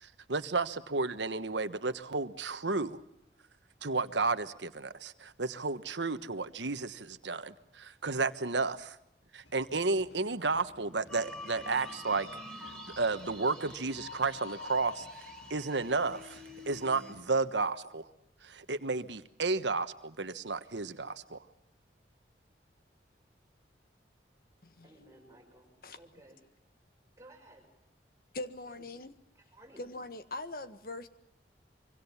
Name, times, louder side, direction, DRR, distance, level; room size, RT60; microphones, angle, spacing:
voice 1, 0.0-3.0 3.8-9.0 9.3-12.3 12.6-15.1 15.5-18.1 18.4-21.4, right 3 dB, 85° right, 10 dB, 1.3 m, -32 dB
sound 1, 9.4-17.3, left 1 dB, 75° left, 3.7 m, -59 dB
sound 2, 11.1-17.1, left 2 dB, 5° left, 5.6 m, -46 dB
voice 2, 24.8-26.4 27.2-27.8 28.7-28.9 29.3-29.9, right 1 dB, 15° right, 1 dB, 5.8 m, -57 dB
voice 3, 28.3-29.1 29.8-31.1, left 2 dB, 50° left, 11 dB, 1.6 m, -41 dB
25.0 x 24.5 x 7.2 m, 0.82 s
head